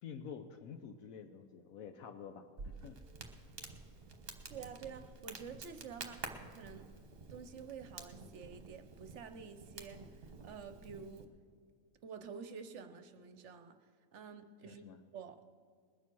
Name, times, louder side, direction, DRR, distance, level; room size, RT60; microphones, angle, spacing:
voice 1, 0.0-3.0 14.6-15.0, left 7 dB, 80° left, 7 dB, 1.1 m, -49 dB
Crackle, 2.6-11.2, right 4 dB, 45° right, 1.2 m, -50 dB
voice 2, 4.5-6.9 7.3-10.1 10.4-11.3 12.0-13.8 14.1-14.9 15.1-15.4, right 6 dB, 60° right, 9 dB, 1.0 m, -49 dB
21.0 x 7.2 x 6.1 m, 2.2 s
omnidirectional pair, 1.4 m